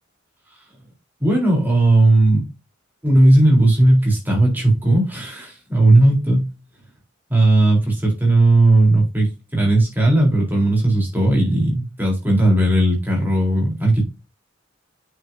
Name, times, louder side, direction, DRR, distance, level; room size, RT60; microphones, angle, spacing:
voice 1, 1.2-2.5 3.0-6.5 7.3-14.0, right 1 dB, 10° right, -1 dB, 3.8 m, -16 dB
8.8 x 6.0 x 2.7 m, 0.26 s
head